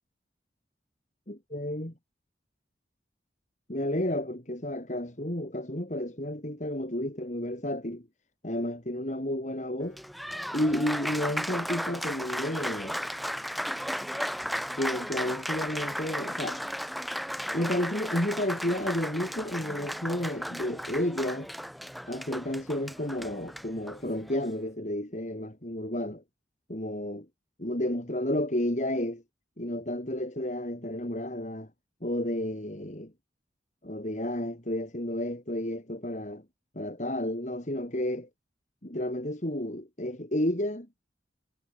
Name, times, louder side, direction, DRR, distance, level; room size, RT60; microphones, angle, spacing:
voice 1, 1.3-1.9 3.7-8.1 8.4-10.0 10.5-13.0 14.8-16.6 17.5-21.5 22.1-26.2 26.7-27.3 27.6-29.2 29.6-31.7 32.0-33.1 33.8-36.4 36.7-38.3 38.8-40.9, left 1 dB, 40° left, 3.2 m, -31 dB
Applause, 9.8-24.5, equal, ahead, 2.6 m, -35 dB
head